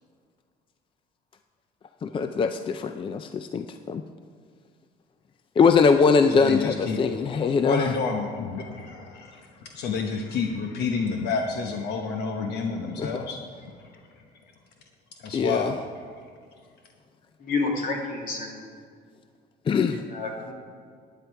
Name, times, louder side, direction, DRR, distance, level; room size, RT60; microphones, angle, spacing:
voice 1, 2.0-4.0 5.6-7.9 13.0-13.1 15.3-15.7 19.7-20.0, left 5 dB, 30° left, 8 dB, 0.4 m, -22 dB
voice 2, 6.3-13.4 13.8-13.9 15.2-15.7, left 4 dB, 75° left, 3 dB, 1.0 m, -30 dB
voice 3, 17.4-18.7 20.1-20.5, left 3 dB, 55° left, 0 dB, 2.5 m, -29 dB
11.0 x 9.7 x 4.7 m, 2.1 s
cardioid pair, 110°, 17 cm